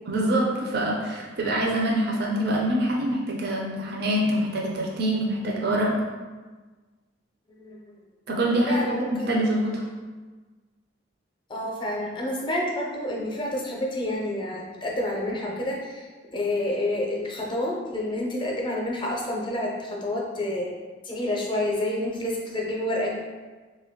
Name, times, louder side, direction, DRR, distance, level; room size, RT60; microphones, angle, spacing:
voice 1, 0.1-5.9 8.3-9.8, right 1 dB, 50° right, -2 dB, 0.4 m, -25 dB
voice 2, 8.6-9.4 11.5-16.0 16.3-20.7 21.0-23.1, left 1 dB, 25° left, -2 dB, 0.5 m, -28 dB
3.3 x 2.2 x 3.5 m, 1.3 s
head